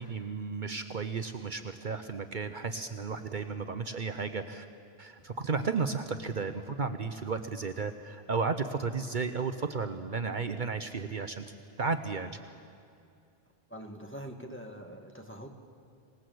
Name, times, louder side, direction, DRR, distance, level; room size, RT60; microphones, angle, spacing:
voice 1, 0.0-4.7 5.0-12.3, right 4 dB, 50° right, 8 dB, 1.0 m, -34 dB
Walk footsteps, 3.1-3.4 4.1-4.4 5.2-5.5 6.1-6.5 7.4-7.7 8.6-9.1 9.5-9.8 10.3-10.8 11.8-12.3, equal, 80° left, 5.6 m, -59 dB
voice 2, 13.7-15.5, equal, 10° left, 3 dB, 1.9 m, -44 dB
26.5 x 19.0 x 7.9 m, 2.3 s
omnidirectional pair, 1.0 m